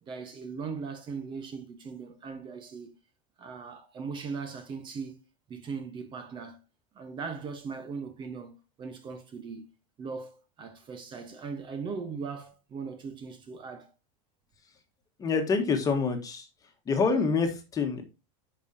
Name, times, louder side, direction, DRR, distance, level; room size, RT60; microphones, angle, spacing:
voice 1, 0.0-3.0 3.4-5.2 5.5-6.6 6.9-9.7 10.0-13.9, right 5 dB, 30° right, 1.2 m, -39 dB
voice 2, 15.2-16.5 16.8-18.0, left 4 dB, 20° left, 1.5 m, -26 dB
10.5 x 5.4 x 2.8 m
supercardioid pair, 150°, 17 cm